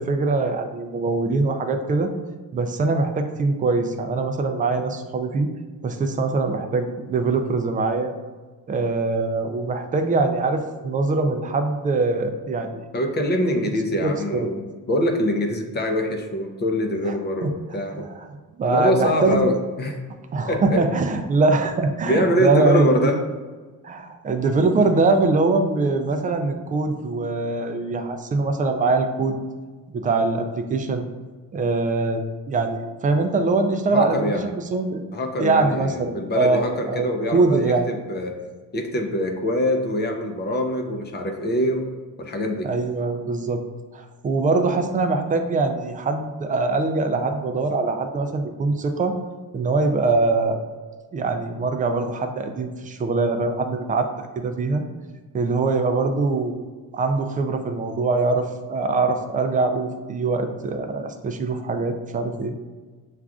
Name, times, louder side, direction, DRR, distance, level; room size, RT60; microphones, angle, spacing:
voice 1, 0.0-2.1 2.5-5.5 5.8-8.1 8.7-12.8 13.9-14.5 17.1-17.2 17.4-17.5 18.3-19.4 20.3-23.2 23.8-29.4 29.9-31.0 31.5-35.0 35.4-37.9 42.7-43.6 43.9-49.1 49.5-50.6 51.1-54.8 55.3-56.6 56.9-62.5, right 3 dB, 25° right, 6 dB, 0.3 m, -23 dB
voice 2, 12.9-18.1 18.7-20.0 20.5-20.8 22.0-23.2 24.9-25.0 33.9-34.6 35.1-38.4 38.7-41.9 42.2-42.7, left 1 dB, 30° left, 4 dB, 0.6 m, -24 dB
7.2 x 2.4 x 2.3 m, 1.4 s
cardioid pair, 130°, 35 cm